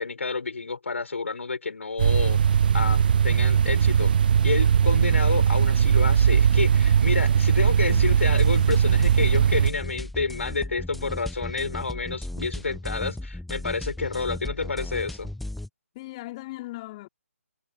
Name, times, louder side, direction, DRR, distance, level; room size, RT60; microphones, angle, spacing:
voice 1, 0.0-2.4 2.7-4.1 4.4-15.3, left 4 dB, 55° left, 7.1 m, -29 dB
sound 1, 2.0-9.7, right 8 dB, 35° right, 0.8 m, -20 dB
voice 2, 5.1-5.4 15.9-17.1, left 19 dB, 20° left, 5.3 m, -39 dB
sound 2, 7.9-15.7, left 1 dB, ahead, 0.9 m, -36 dB
figure-of-eight pair, 145°, 8 cm